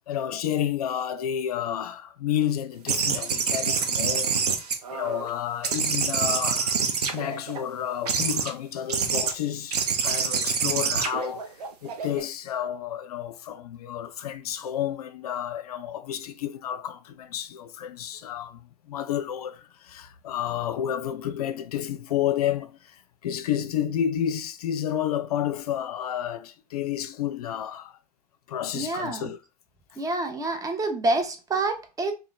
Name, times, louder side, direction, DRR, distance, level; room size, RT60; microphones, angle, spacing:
voice 1, 0.1-4.4 4.9-28.0 28.5-29.4, left 10 dB, 70° left, 0.5 m, -30 dB
sound 1, 2.9-5.3 5.6-7.6 8.1-8.5 8.9-9.3 9.7-12.2, right 6 dB, 75° right, 0.7 m, -26 dB
voice 2, 28.7-29.3 30.0-32.1, right 2 dB, 15° right, 0.8 m, -27 dB
3.0 x 2.3 x 3.8 m
figure-of-eight pair, 80°, 20 cm